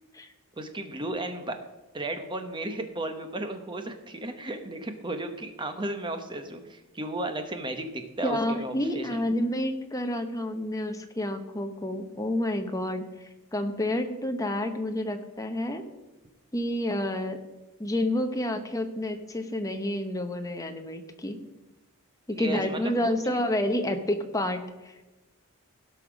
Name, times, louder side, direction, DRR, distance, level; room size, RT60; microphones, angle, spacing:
voice 1, 0.6-1.6 1.9-9.2 22.3-23.4, right 1 dB, 20° right, 7 dB, 0.9 m, -34 dB
voice 2, 8.2-13.0 13.5-15.8 16.5-17.4 17.8-21.4 22.3-25.0, left 1 dB, 15° left, 6 dB, 0.9 m, -29 dB
16.5 x 5.7 x 5.1 m, 1.1 s
head